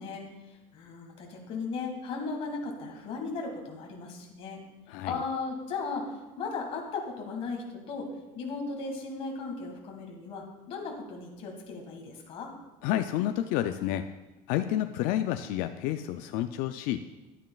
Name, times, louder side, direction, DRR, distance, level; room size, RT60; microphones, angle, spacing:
voice 1, 0.0-4.6 5.1-6.1 6.4-8.1 8.3-12.5, left 4 dB, 40° left, 1 dB, 1.7 m, -36 dB
voice 2, 12.8-14.0 14.5-17.0, left 12 dB, 65° left, 8 dB, 0.4 m, -29 dB
11.5 x 9.0 x 2.3 m, 1.1 s
cardioid pair, 165°, 16 cm